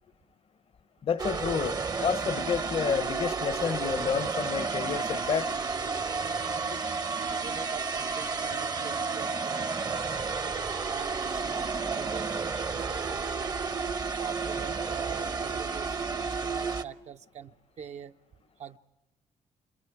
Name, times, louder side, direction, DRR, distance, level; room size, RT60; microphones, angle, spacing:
voice 1, 1.0-5.5 6.7-6.8, left 7 dB, 50° left, 0.7 m, -30 dB
sound 1, 1.2-16.8, right 4 dB, 30° right, 0.7 m, -31 dB
Harp, 2.2-4.7, left 11 dB, 80° left, 1.4 m, -54 dB
voice 2, 7.2-10.3 10.9-13.3 14.2-18.2 18.6-18.8, right 8 dB, 65° right, 0.7 m, -43 dB
30.0 x 26.5 x 4.7 m
cardioid pair, 100°, 13 cm